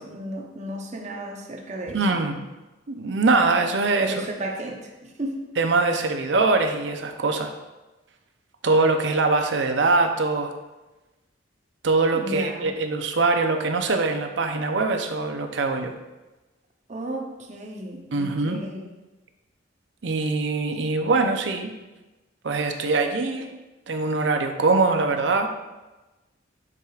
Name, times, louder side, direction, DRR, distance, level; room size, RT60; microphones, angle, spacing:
voice 1, 0.0-2.2 4.0-5.4 12.1-12.7 16.9-18.8, right 1 dB, 40° right, 1 dB, 0.8 m, -34 dB
voice 2, 1.9-2.4 2.9-4.3 5.6-7.5 8.6-10.5 11.8-15.9 18.1-18.6 20.0-21.7 22.4-23.5 23.9-25.5, right 3 dB, 70° right, 5 dB, 0.6 m, -23 dB
9.5 x 4.9 x 2.4 m, 1.1 s
head